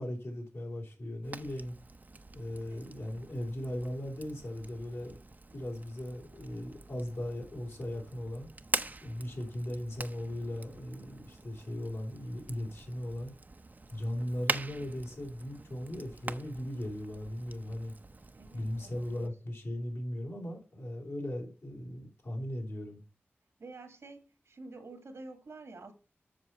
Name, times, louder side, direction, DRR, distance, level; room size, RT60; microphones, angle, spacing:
voice 1, 0.0-1.8 2.3-5.2 5.5-8.5 9.0-13.3 13.9-17.9 18.5-23.0, left 1 dB, 70° left, 3.0 m, -38 dB
Fire, 1.2-19.3, right 3 dB, 40° right, 0.6 m, -43 dB
voice 2, 2.5-2.9 18.3-19.3 23.6-25.9, right 3 dB, 85° right, 1.9 m, -49 dB
7.7 x 6.0 x 4.2 m
cardioid pair, 55°, 5 cm